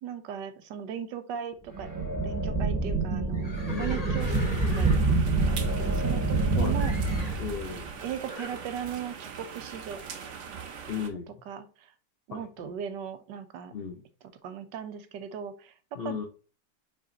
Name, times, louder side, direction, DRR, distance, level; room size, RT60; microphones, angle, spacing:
voice 1, 0.0-1.9 2.2-3.5 3.8-4.9 5.2-6.9 8.0-10.0 10.5-10.6 11.5-11.9 12.3-13.7 14.4-16.3, right 8 dB, 75° right, 10 dB, 1.3 m, -38 dB
sound 1, 1.7-7.9, right 3 dB, 15° right, 0.7 m, -27 dB
Livestock farm animals working animals, 3.3-6.4 6.8-7.5 8.3-8.6, left 2 dB, 25° left, 1.0 m, -41 dB
voice 2, 3.7-4.1 6.6-6.8 7.4-7.9 10.9-11.4 12.3-12.7 13.7-14.0 15.9-16.2, left 6 dB, 85° left, 3 dB, 0.5 m, -36 dB
sound 2, 4.2-11.1, right 6 dB, 50° right, 1.0 m, -42 dB
5.3 x 4.9 x 3.8 m, 0.37 s
omnidirectional pair, 2.0 m